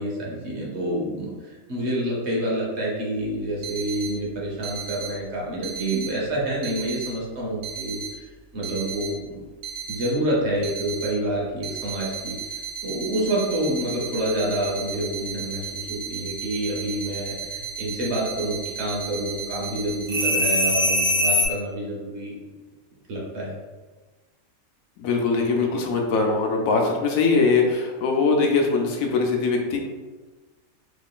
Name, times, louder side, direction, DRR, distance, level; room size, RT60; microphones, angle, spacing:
voice 1, 0.0-8.3 8.5-9.5 9.9-22.3 23.1-23.5, right 1 dB, 55° right, -4 dB, 1.0 m, -28 dB
sound 1, 3.6-4.1 4.6-5.1 5.6-6.1 6.6-7.1 7.6-8.1 8.6-9.1 9.6-10.1 10.6-11.1 11.6-21.5, right 1 dB, 85° right, 1.2 m, -28 dB
voice 2, 25.0-29.8, left 4 dB, 75° left, 1 dB, 1.0 m, -21 dB
3.1 x 2.3 x 3.6 m, 1.3 s
omnidirectional pair, 1.5 m